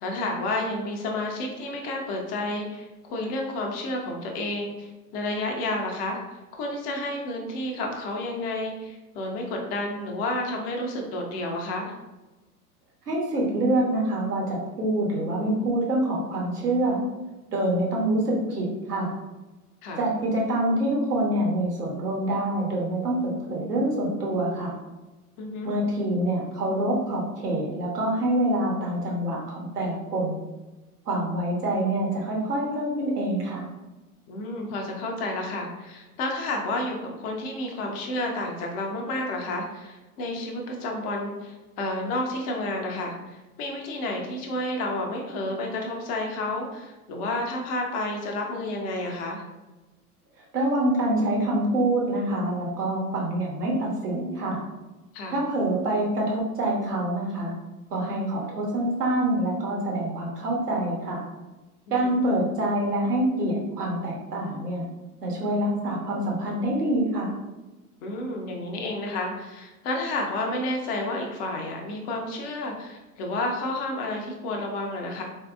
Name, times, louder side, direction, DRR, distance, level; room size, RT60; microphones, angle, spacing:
voice 1, 0.0-11.9 19.8-20.0 25.4-25.7 34.3-49.4 55.1-55.4 61.9-62.2 68.0-75.2, left 2 dB, 20° left, 1 dB, 0.3 m, -31 dB
voice 2, 13.1-17.0 17.5-19.1 20.0-24.7 25.6-30.4 31.1-33.6 50.5-54.6 55.3-57.5 57.9-61.2 61.9-64.9 65.2-67.3, right 1 dB, 75° right, -2 dB, 1.2 m, -26 dB
3.9 x 2.6 x 2.3 m, 1.1 s
figure-of-eight pair, 90°, 46 cm